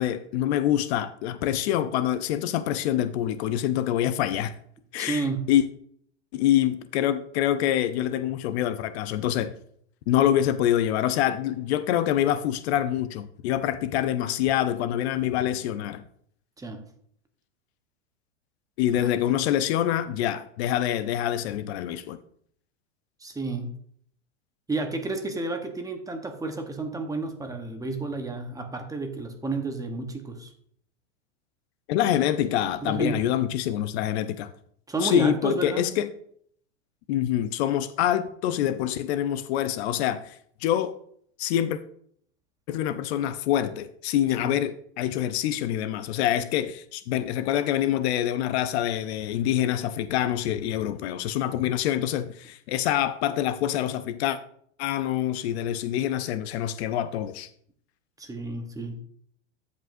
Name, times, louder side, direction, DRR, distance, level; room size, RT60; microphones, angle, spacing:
voice 1, 0.0-4.5 4.9-5.7 6.3-9.5 10.1-16.0 18.8-22.2 31.9-34.5 35.0-36.1 37.1-40.9 41.4-41.8 42.7-54.4 54.8-57.5, left 11 dB, 60° left, 0.6 m, -26 dB
voice 2, 5.0-5.5 16.6-16.8 18.9-19.1 23.2-23.7 24.7-30.5 32.8-33.2 34.9-35.9 44.4-44.5 58.2-59.0, right 3 dB, 10° right, 1.0 m, -31 dB
14.5 x 5.3 x 2.6 m
hypercardioid pair, 120°, 37 cm